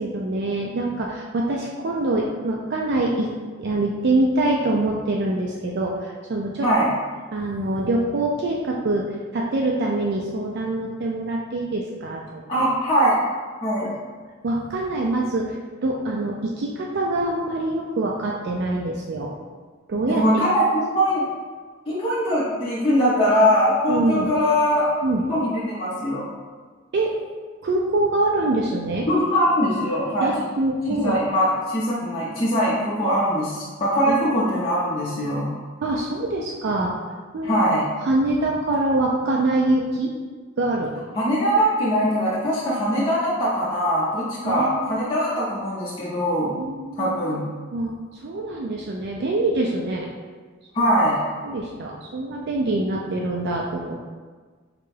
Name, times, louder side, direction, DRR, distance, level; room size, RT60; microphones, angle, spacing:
voice 1, 0.0-3.3 3.6-6.7 7.3-9.1 9.3-12.4 14.4-15.6 15.8-19.3 19.9-20.2 23.9-24.3 25.0-25.2 26.9-27.1 27.6-29.1 30.2-31.2 34.1-34.2 35.8-36.9 37.3-37.6 38.0-40.1 40.6-40.9 42.9-43.0 44.4-45.1 46.5-47.4 47.7-47.9 48.2-50.1 51.4-53.9, right 2 dB, 55° right, -2 dB, 0.4 m, -24 dB
voice 2, 12.5-13.2 13.6-13.9 20.1-21.2 21.9-24.9 25.3-26.3 29.1-30.3 31.0-35.5 37.4-37.8 41.1-46.5 46.9-47.4 50.7-51.2, equal, 25° left, -10 dB, 0.6 m, -21 dB
5.0 x 2.2 x 3.2 m, 1.5 s
head